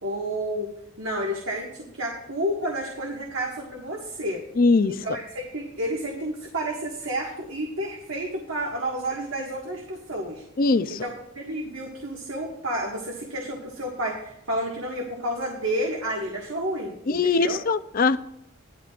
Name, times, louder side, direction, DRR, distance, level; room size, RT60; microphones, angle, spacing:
voice 1, 0.0-4.5 4.9-10.4 10.9-17.6, right 1 dB, 80° right, 1.7 m, -30 dB
voice 2, 4.6-5.0 10.6-11.0 17.1-18.2, left 4 dB, 45° left, 0.5 m, -21 dB
15.5 x 12.0 x 2.5 m
head